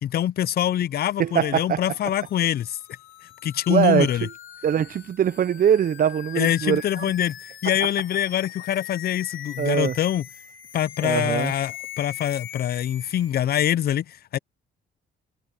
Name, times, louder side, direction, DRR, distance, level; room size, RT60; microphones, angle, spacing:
voice 1, 0.0-2.8 3.4-4.3 6.4-10.2 10.7-14.4, left 11 dB, 50° left, 0.5 m, -24 dB
sound 1, 1.1-13.3, left 12 dB, 80° left, 3.2 m, -41 dB
voice 2, 1.2-1.8 3.7-4.3 4.6-7.0 7.6-7.7 9.6-10.0 11.0-11.5, right 9 dB, 45° right, 0.6 m, -22 dB
cardioid pair, 90°, 20 cm